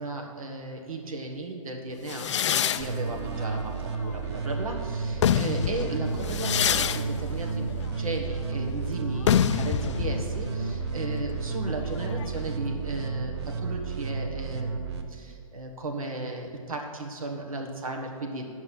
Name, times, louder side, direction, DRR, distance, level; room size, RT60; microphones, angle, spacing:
voice 1, 0.0-18.5, right 2 dB, 70° right, 2 dB, 1.4 m, -35 dB
sound 1, 2.1-4.6 5.0-12.5, left 9 dB, 55° left, 0.4 m, -28 dB
Bowed string instrument, 2.7-7.8, right 5 dB, 10° right, 0.4 m, -50 dB
sound 2, 2.8-15.0, right 4 dB, 45° right, 0.9 m, -32 dB
9.3 x 6.0 x 6.2 m, 2.3 s
figure-of-eight pair, 130°, 18 cm